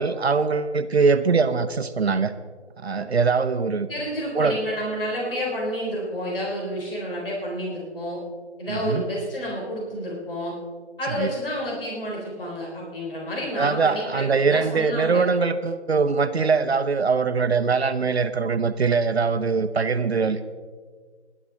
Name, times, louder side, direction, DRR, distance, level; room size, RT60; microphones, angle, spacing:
voice 1, 0.0-2.3 2.8-3.9 4.3-4.6 8.7-9.0 11.2-11.3 13.5-20.4, right 5 dB, 65° right, 10 dB, 0.8 m, -22 dB
voice 2, 3.9-8.2 8.6-10.5 11.0-15.2, equal, 50° left, -2 dB, 3.9 m, -30 dB
18.5 x 11.0 x 4.0 m, 1.5 s
figure-of-eight pair, 160°, 34 cm